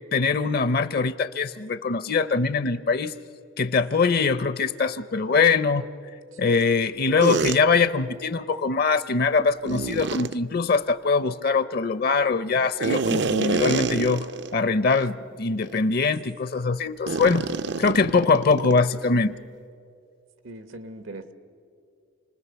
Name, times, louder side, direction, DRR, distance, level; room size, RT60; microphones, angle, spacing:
voice 1, 0.1-3.2 3.6-5.9 6.4-14.3 14.5-17.5 17.8-19.3, left 4 dB, 50° left, 15 dB, 0.6 m, -22 dB
sound 1, 7.2-7.6 9.6-10.3 12.8-14.5 14.9-15.0 15.6-15.8 17.1-18.9, right 4 dB, 55° right, 0.5 m, -26 dB
voice 2, 20.4-21.3, right 2 dB, 85° right, 11 dB, 1.4 m, -40 dB
29.0 x 20.0 x 6.9 m, 2.4 s
head